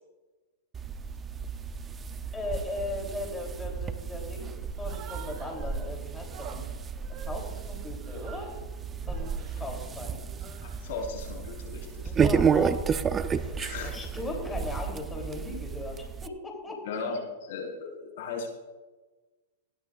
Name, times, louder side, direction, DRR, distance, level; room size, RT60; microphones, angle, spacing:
sound 1, 0.7-16.3, right 6 dB, 15° right, 0.6 m, -32 dB
voice 1, 2.3-6.7 7.1-8.5 9.1-10.2 12.0-12.8 13.2-16.8, left 2 dB, 10° left, 1 dB, 3.2 m, -38 dB
Human voice, 4.7-5.9 6.3-8.6 9.0-9.6 10.2-11.0, right 9 dB, 40° right, 1.9 m, -48 dB
voice 2, 10.6-12.1 13.6-13.9 16.8-18.5, left 4 dB, 65° left, -1 dB, 4.4 m, -36 dB
19.5 x 16.0 x 2.5 m, 1.3 s
hypercardioid pair, 145°, 0 cm